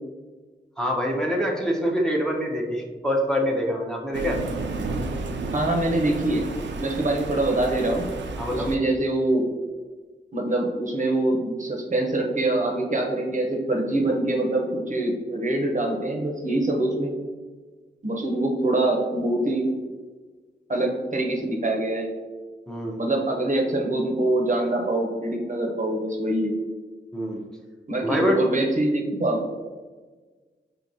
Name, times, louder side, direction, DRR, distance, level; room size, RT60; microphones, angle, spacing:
voice 1, 0.8-4.4 8.4-8.7 22.7-23.0 27.1-27.4 28.0-28.4, equal, 5° left, -1 dB, 0.7 m, -25 dB
Thunder, 4.1-8.8, right 3 dB, 80° right, 0.4 m, -32 dB
voice 2, 5.5-6.4 6.8-8.1 8.5-9.4 10.3-17.1 18.0-19.7 20.7-22.1 23.0-26.6 27.9-29.4, right 1 dB, 45° right, 1 dB, 0.7 m, -24 dB
5.0 x 2.8 x 2.6 m, 1.4 s
cardioid pair, 55°, 18 cm